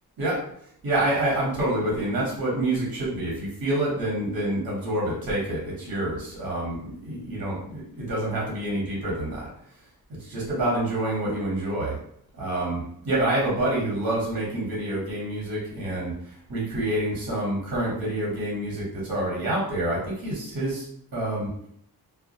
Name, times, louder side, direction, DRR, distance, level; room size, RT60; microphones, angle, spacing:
voice 1, 0.8-9.5 10.2-12.0 12.4-16.2 16.5-20.9 21.1-21.5, right 1 dB, 65° right, -5 dB, 1.0 m, -27 dB
2.3 x 2.1 x 2.7 m, 0.69 s
wide cardioid pair, 80°, 38 cm